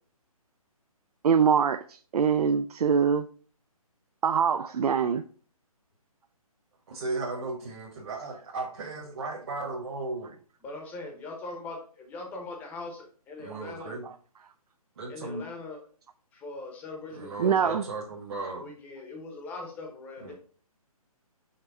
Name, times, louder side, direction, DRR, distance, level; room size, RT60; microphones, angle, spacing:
voice 1, 1.2-3.3 4.2-5.2 13.5-13.6 17.4-17.8, right 7 dB, 85° right, 0.4 m, -24 dB
voice 2, 6.9-10.4 13.4-14.0 15.0-15.5 17.1-18.6 20.2-20.3, right 3 dB, 45° right, 1.2 m, -36 dB
voice 3, 10.6-14.0 15.1-15.8 16.3-17.8 18.6-20.3, left 3 dB, 10° left, 0.7 m, -40 dB
5.8 x 3.1 x 5.3 m
hypercardioid pair, 160°, 19 cm